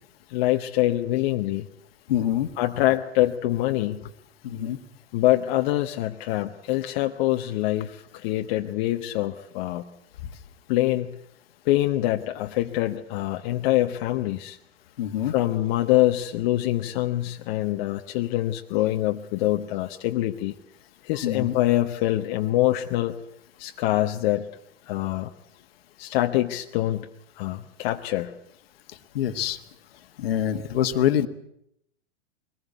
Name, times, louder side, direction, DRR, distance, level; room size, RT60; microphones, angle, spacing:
voice 1, 0.3-1.7 2.6-4.0 5.1-9.9 10.7-11.1 11.6-14.6 15.2-20.5 21.0-23.1 23.6-24.5 24.9-25.3 26.0-27.1 27.4-28.3, left 15 dB, 45° left, 4 dB, 1.1 m, -25 dB
voice 2, 2.1-2.5 4.4-4.8 15.0-15.3 21.2-21.5 29.1-29.6 30.2-31.3, left 10 dB, 60° left, 10 dB, 1.6 m, -25 dB
23.0 x 19.5 x 8.3 m, 0.77 s
figure-of-eight pair, 100°, 33 cm